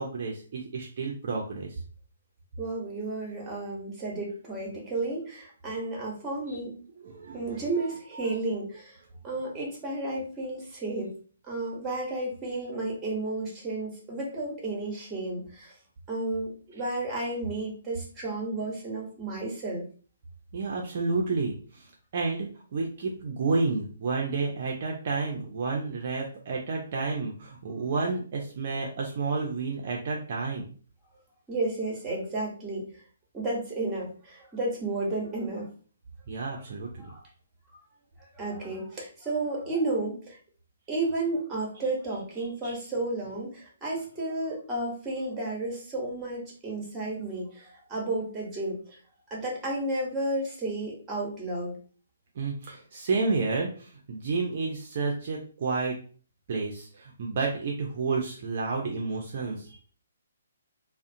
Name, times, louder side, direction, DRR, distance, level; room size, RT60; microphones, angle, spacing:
voice 1, 0.0-1.8 6.5-6.6 7.0-7.6 8.1-8.2 20.5-30.7 36.3-37.1 42.4-42.8 52.4-56.0 56.5-59.8, right 4 dB, 45° right, -1 dB, 0.4 m, -31 dB
voice 2, 2.6-6.8 7.3-11.1 11.4-15.7 16.1-19.8 31.5-32.9 33.3-35.7 37.0-37.2 38.2-40.4 40.9-48.8 49.3-51.8, right 2 dB, 15° right, -1 dB, 0.9 m, -32 dB
2.4 x 2.0 x 2.6 m, 0.41 s
figure-of-eight pair, 130°, 0 cm